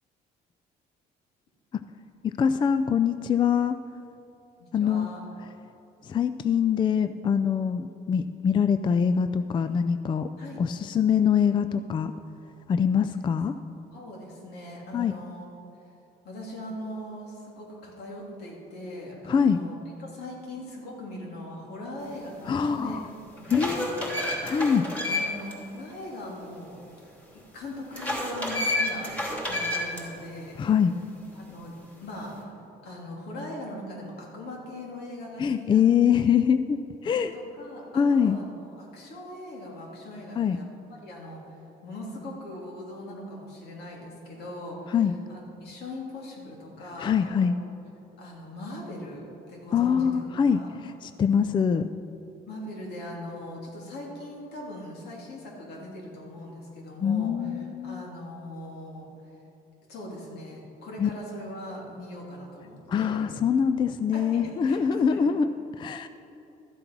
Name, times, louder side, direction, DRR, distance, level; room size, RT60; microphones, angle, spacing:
voice 1, 2.2-3.8 4.7-5.1 6.0-10.3 10.6-12.1 12.7-13.5 14.9-15.2 19.3-19.6 22.5-23.1 23.5-24.9 30.6-30.9 35.4-37.3 38.0-38.4 40.4-40.6 44.9-45.2 47.0-47.6 49.7-51.9 57.0-58.0 61.0-61.1 62.9-65.5 65.8-66.1, left 7 dB, 30° left, 11 dB, 0.4 m, -24 dB
voice 2, 4.6-5.2 10.4-10.6 13.9-15.5 16.2-23.0 23.3-24.3 25.1-26.8 27.3-29.1 29.5-30.6 31.3-32.5 32.8-36.2 37.0-45.0 45.3-47.1 47.4-47.5 48.2-50.7 52.5-59.4 59.9-63.4 64.1-65.2, left 1 dB, 75° left, -2 dB, 3.1 m, -40 dB
sound 1, 22.5-22.6 23.2-25.5 25.9-26.0 27.9-30.0, left 1 dB, 10° left, 3.0 m, -30 dB
13.0 x 7.8 x 6.0 m, 2.9 s
cardioid pair, 110°, 17 cm